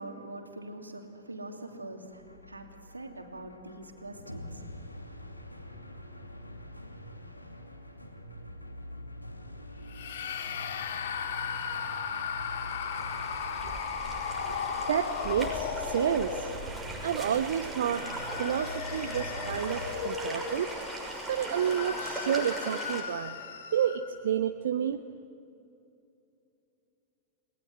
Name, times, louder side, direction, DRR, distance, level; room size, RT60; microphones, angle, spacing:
voice 1, 0.0-2.2 2.5-2.6 2.9-4.5, right 2 dB, 80° right, 4 dB, 2.8 m, -43 dB
sound 1, 2.0-19.9, left 1 dB, 85° left, 2.5 m, -45 dB
sound 2, 9.9-17.0 17.7-24.2, left 7 dB, 60° left, 2.4 m, -36 dB
sound 3, 12.5-23.0, right 2 dB, 5° right, 6.3 m, -39 dB
voice 2, 14.9-16.5 17.0-18.1 18.4-20.7 21.3-23.3 23.7-25.0, right 9 dB, 60° right, 10 dB, 0.8 m, -30 dB
30.0 x 20.0 x 9.8 m, 2.7 s
figure-of-eight pair, 90°, 0 cm